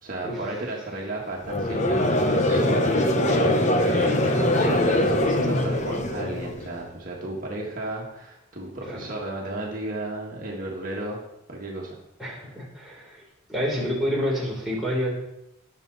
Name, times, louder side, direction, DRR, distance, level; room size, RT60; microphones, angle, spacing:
voice 1, 0.0-11.2 11.5-12.0, right 2 dB, 40° right, -3 dB, 1.8 m, -34 dB
Conversation / Crowd, 1.4-6.7, left 1 dB, 35° left, 1.0 m, -22 dB
voice 2, 12.2-13.2 13.5-15.1, equal, ahead, -5 dB, 3.5 m, -28 dB
19.5 x 6.9 x 4.1 m, 0.87 s
head